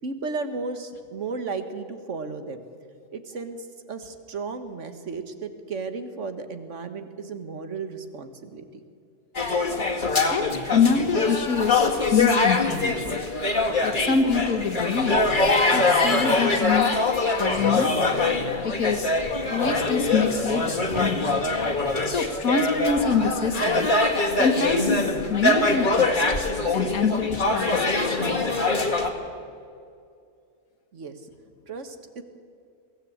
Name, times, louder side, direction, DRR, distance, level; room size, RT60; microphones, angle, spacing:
voice 1, 0.0-2.7 3.1-8.7 30.9-31.2 31.7-32.2, right 4 dB, 60° right, 9 dB, 1.8 m, -34 dB
sound 1, 9.4-29.1, left 3 dB, 35° left, 2.1 m, -23 dB
voice 2, 10.3-13.2 13.8-15.3 15.7-16.9 17.4-18.2 18.6-19.1 19.5-21.3 22.1-23.9 24.4-24.8 25.3-26.2 26.7-28.3, left 5 dB, 90° left, 6 dB, 2.1 m, -25 dB
22.5 x 16.5 x 8.8 m, 2.3 s
omnidirectional pair, 1.5 m